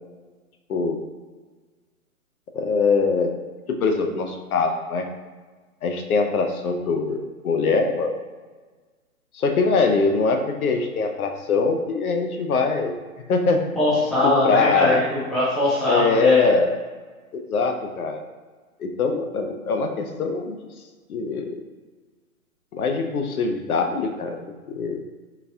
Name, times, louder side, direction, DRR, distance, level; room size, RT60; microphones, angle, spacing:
voice 1, 0.7-1.0 2.5-3.3 3.7-5.1 5.8-8.2 9.3-13.0 13.3-13.7 14.2-15.1 15.9-16.8 17.3-18.3 18.8-20.6 21.1-21.6 22.7-25.0, left 4 dB, 75° left, 5 dB, 0.6 m, -22 dB
voice 2, 13.7-16.4, left 1 dB, ahead, -11 dB, 0.3 m, -21 dB
3.8 x 2.3 x 2.6 m, 1.4 s
hypercardioid pair, 160°, 43 cm